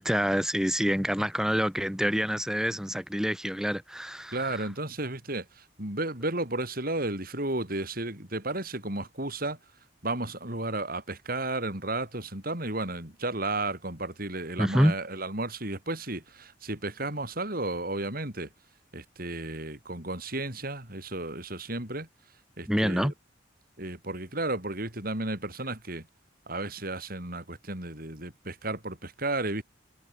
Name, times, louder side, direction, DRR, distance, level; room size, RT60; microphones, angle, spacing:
voice 1, 0.0-4.7 14.6-15.0 22.7-23.1, equal, 5° right, 4.1 m, -27 dB
voice 2, 4.3-9.6 10.0-18.5 18.9-22.1 22.6-23.1 23.8-26.1 26.5-29.6, right 2 dB, 50° right, 7.1 m, -33 dB
head